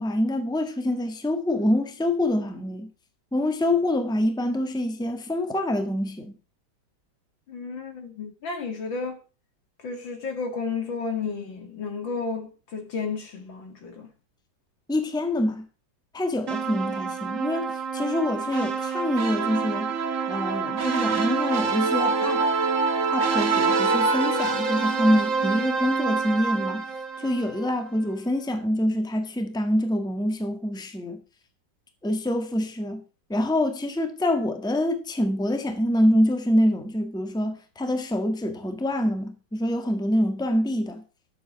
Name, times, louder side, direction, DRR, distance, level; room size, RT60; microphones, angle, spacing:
voice 1, 0.0-2.9 3.3-6.3 14.9-15.6 16.1-19.9 20.3-22.5 23.1-26.8 27.2-31.2 32.0-33.0 33.3-41.0, left 1 dB, ahead, 1.4 m, -25 dB
voice 2, 7.5-9.2 9.8-14.1, left 4 dB, 75° left, 2.9 m, -32 dB
sound 1, 16.5-27.7, right 4 dB, 45° right, 1.7 m, -26 dB
10.5 x 7.8 x 6.2 m
omnidirectional pair, 2.1 m